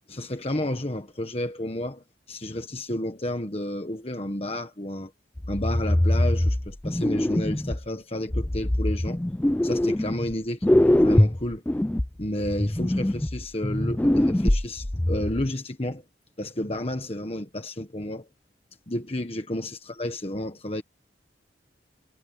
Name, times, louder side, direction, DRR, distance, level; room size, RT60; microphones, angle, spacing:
voice 1, 0.1-5.1 5.5-9.2 9.6-11.6 12.2-16.0 16.4-18.3 18.9-20.8, left 1 dB, 35° left, 1.4 m, -31 dB
sound 1, 5.4-7.8 8.3-10.3 10.6-15.5, left 1 dB, 10° left, 0.3 m, -23 dB
head